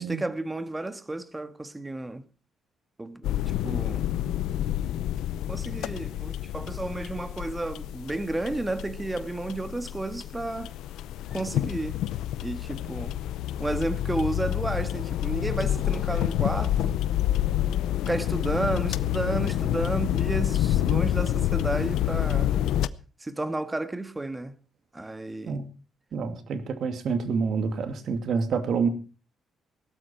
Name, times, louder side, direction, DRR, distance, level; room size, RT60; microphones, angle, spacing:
voice 1, 0.0-2.2 3.0-3.4 3.6-4.2 5.5-10.7 11.3-12.0 12.4-13.1 13.6-17.0 18.1-22.5 23.2-24.5 24.9-25.6, right 2 dB, 15° right, 1.5 m, -32 dB
sound 1, 3.2-22.9, left 12 dB, 85° left, 0.6 m, -28 dB
voice 2, 26.1-28.9, right 5 dB, 65° right, 2.5 m, -27 dB
17.5 x 12.5 x 4.5 m
cardioid pair, 90°, 0 cm